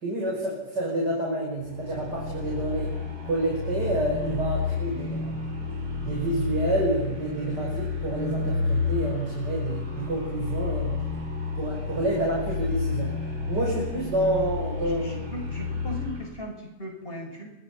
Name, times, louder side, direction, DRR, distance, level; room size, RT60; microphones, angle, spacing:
voice 1, 0.0-2.9 3.2-5.4 6.0-11.0 11.6-13.1 13.5-15.2, right 1 dB, 85° right, -2 dB, 6.2 m, -28 dB
sound 1, 1.6-16.4, left 4 dB, 65° right, 5.3 m, -30 dB
voice 2, 4.8-5.1 14.8-17.5, equal, 30° left, 1 dB, 6.6 m, -38 dB
27.5 x 25.0 x 5.8 m, 0.97 s
omnidirectional pair, 1.8 m